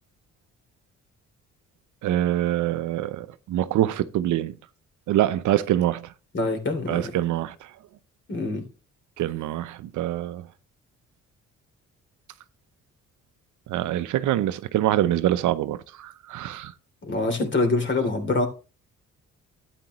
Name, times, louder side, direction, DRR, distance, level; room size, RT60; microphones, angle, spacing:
voice 1, 2.0-4.6 5.1-6.1 6.9-7.8 9.2-10.5 13.7-16.7, right 13 dB, 80° right, 0.7 m, -25 dB
voice 2, 6.3-7.0 8.3-8.6 17.0-18.5, left 2 dB, 40° left, 3.0 m, -25 dB
11.5 x 9.0 x 3.0 m
cardioid pair, 90°, 30 cm